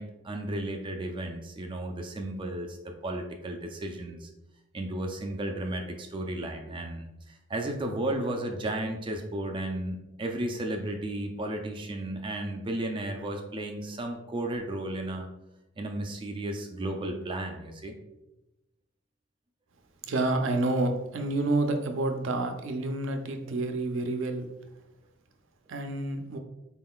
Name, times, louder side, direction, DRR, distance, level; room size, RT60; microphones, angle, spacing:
voice 1, 0.0-4.3 4.7-15.3 15.8-17.9, right 1 dB, 25° right, 3 dB, 0.4 m, -34 dB
voice 2, 20.0-24.5 25.7-26.4, right 2 dB, 70° right, 5 dB, 0.5 m, -29 dB
4.2 x 3.7 x 2.3 m, 0.94 s
head